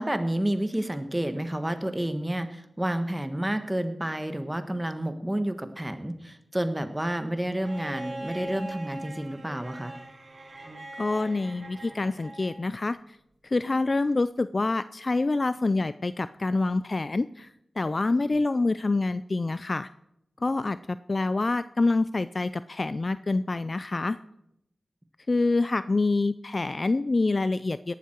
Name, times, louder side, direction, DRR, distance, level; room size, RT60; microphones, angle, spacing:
voice 1, 0.0-10.0, right 1 dB, 10° right, 9 dB, 1.4 m, -30 dB
Bowed string instrument, 7.6-12.7 14.1-14.2, right 2 dB, 45° right, 5.1 m, -41 dB
voice 2, 11.0-13.2 13.4-17.5 17.8-19.9 20.4-24.2 25.3-27.9, left 3 dB, 40° left, 15 dB, 0.4 m, -26 dB
17.5 x 12.0 x 4.6 m, 0.81 s
wide cardioid pair, 70°, 0 cm